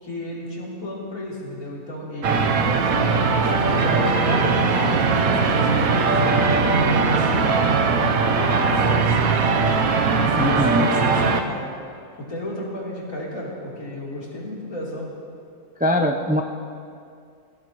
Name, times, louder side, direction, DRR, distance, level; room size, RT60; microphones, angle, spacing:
voice 1, 0.0-3.3 3.7-6.4 6.7-7.7 8.0-9.6 10.1-11.7 12.2-15.1, left 1 dB, 65° left, -6 dB, 4.1 m, -33 dB
sound 1, 2.2-11.4, right 4 dB, 80° right, 1.3 m, -20 dB
voice 2, 10.3-10.9 15.8-16.4, equal, 10° right, 3 dB, 0.6 m, -21 dB
23.5 x 16.0 x 3.1 m, 2.4 s
omnidirectional pair, 1.5 m